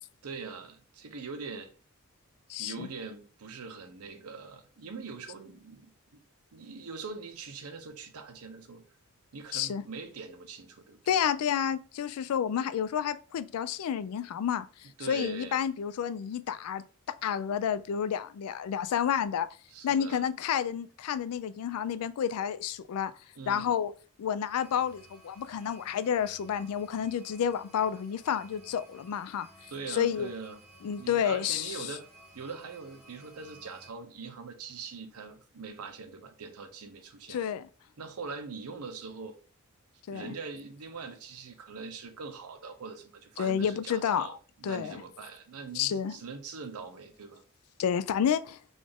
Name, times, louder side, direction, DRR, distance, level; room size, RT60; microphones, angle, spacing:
voice 1, 0.2-1.7 2.6-5.9 6.5-8.8 9.3-11.0 15.0-15.6 19.7-20.2 23.3-23.7 29.7-30.6 31.0-32.0 32.3-37.4 38.0-39.4 40.1-47.4, right 4 dB, 85° right, 0.7 m, -42 dB
voice 2, 2.5-2.9 9.5-9.8 11.1-19.6 19.8-23.1 23.5-23.9 24.2-29.5 29.9-30.3 30.8-31.9 37.3-37.7 40.1-40.3 43.4-44.3 44.6-45.0 45.7-46.2 47.8-48.6, left 8 dB, 80° left, 0.3 m, -30 dB
sound 1, 24.5-33.9, right 1 dB, 5° right, 1.3 m, -56 dB
3.9 x 2.5 x 3.5 m
head